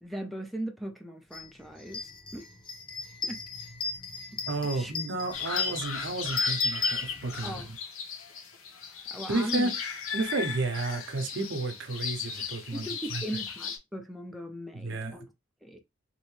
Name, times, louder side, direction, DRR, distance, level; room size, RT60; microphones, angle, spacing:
voice 1, 0.0-2.5 3.2-3.4 4.7-4.9 7.4-7.7 9.1-9.7 12.7-15.3 15.6-15.8, right 1 dB, ahead, 0.4 m, -38 dB
sound 1, 1.3-1.5 1.8-7.6, left 3 dB, 25° left, 0.8 m, -34 dB
voice 2, 4.5-7.8 9.3-9.7 10.1-13.2 14.7-15.2, right 2 dB, 65° right, 0.7 m, -32 dB
sound 2, 5.3-13.8, left 6 dB, 85° left, 0.8 m, -36 dB
3.1 x 2.7 x 3.1 m
head